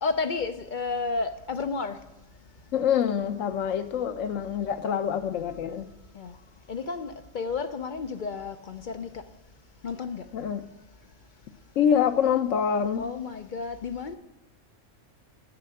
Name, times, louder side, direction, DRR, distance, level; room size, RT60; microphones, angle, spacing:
voice 1, 0.0-2.0 6.2-6.3 6.7-9.2 9.8-10.2 13.0-14.2, left 4 dB, 50° left, 9 dB, 0.6 m, -31 dB
voice 2, 2.7-5.9 10.3-10.6 11.8-13.1, left 8 dB, 85° left, 10 dB, 1.1 m, -25 dB
10.0 x 6.8 x 7.7 m, 0.92 s
omnidirectional pair, 1.3 m